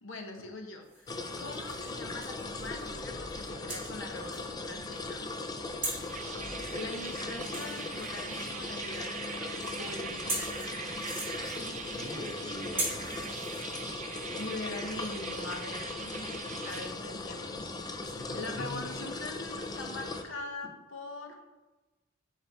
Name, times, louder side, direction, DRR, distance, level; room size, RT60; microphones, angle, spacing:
voice 1, 0.0-5.3 6.2-6.3 6.7-9.5 9.7-11.1 13.9-18.0 18.3-21.4, left 2 dB, 70° left, 4 dB, 0.9 m, -43 dB
sound 1, 0.8-3.0 3.3-15.1, right 2 dB, 10° right, 2.2 m, -42 dB
sound 2, 1.1-20.2, left 3 dB, 20° left, 0.5 m, -39 dB
sound 3, 5.8-16.9, right 7 dB, 35° right, 0.4 m, -43 dB
voice 2, 6.1-6.5 11.6-13.3 14.1-14.4 16.7-16.8 18.0-18.9, left 1 dB, 85° left, -4 dB, 2.1 m, -43 dB
10.0 x 4.3 x 3.5 m, 1.1 s
head